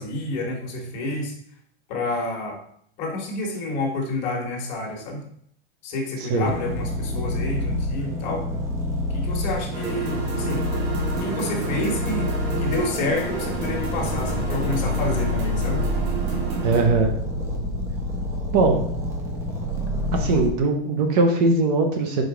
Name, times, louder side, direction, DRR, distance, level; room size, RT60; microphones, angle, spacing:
voice 1, 0.0-1.3 1.9-2.6 3.0-5.2 5.8-8.5 9.1-10.6 11.2-12.3 12.6-15.9, left 2 dB, 45° left, 0 dB, 1.5 m, -29 dB
sound 1, 6.4-20.5, left 1 dB, 10° right, 0.3 m, -27 dB
sound 2, 9.7-16.8, right 4 dB, 75° right, 2.1 m, -31 dB
voice 2, 16.6-17.1 18.5-18.8 20.1-22.2, right 3 dB, 40° right, 4 dB, 0.8 m, -20 dB
5.0 x 3.9 x 4.9 m, 0.65 s
supercardioid pair, 165°, 31 cm